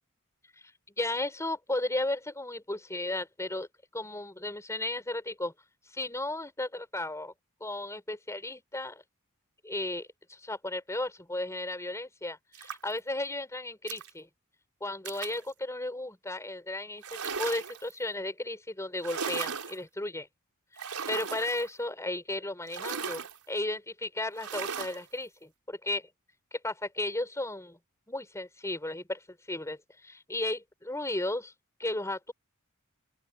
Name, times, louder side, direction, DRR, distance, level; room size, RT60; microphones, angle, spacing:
voice 1, 0.6-3.7 3.9-5.5 5.9-7.3 7.6-9.0 9.6-14.3 14.8-20.3 20.8-26.1 26.5-27.8 28.1-31.5 31.8-32.3, left 2 dB, 15° left, 6.3 m, -35 dB
sound 1, 12.5-13.0 13.9-14.1 15.0-15.4 17.0-17.9 19.0-19.8 20.8-21.7 22.7-23.4 24.3-25.0, right 6 dB, 85° right, 4.0 m, -36 dB
open air
head